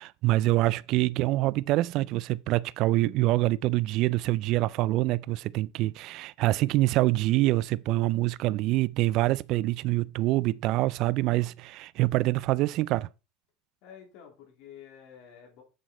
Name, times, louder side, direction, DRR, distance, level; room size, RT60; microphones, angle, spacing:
voice 1, 0.0-13.1, right 18 dB, 50° right, 0.3 m, -25 dB
voice 2, 13.8-15.6, left 8 dB, 60° left, 3.2 m, -49 dB
7.4 x 6.0 x 4.3 m
supercardioid pair, 145°, 0 cm